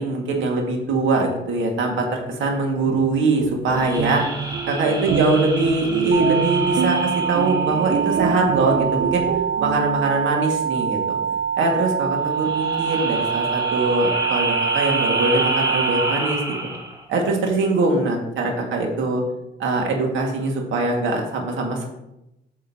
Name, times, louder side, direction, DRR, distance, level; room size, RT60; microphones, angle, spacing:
voice 1, 0.0-4.2 4.7-9.3 9.6-11.2 11.6-16.4 17.1-19.2 19.6-21.9, right 2 dB, 75° right, 1 dB, 1.8 m, -22 dB
sound 1, 2.7-10.3, right 6 dB, 60° right, 0.7 m, -27 dB
sound 2, 3.7-8.5 12.3-17.0, right 1 dB, 20° right, 1.5 m, -29 dB
sound 3, 6.1-16.1, right 6 dB, 45° right, 1.0 m, -25 dB
8.2 x 6.6 x 2.8 m, 0.89 s
cardioid pair, 90°, 20 cm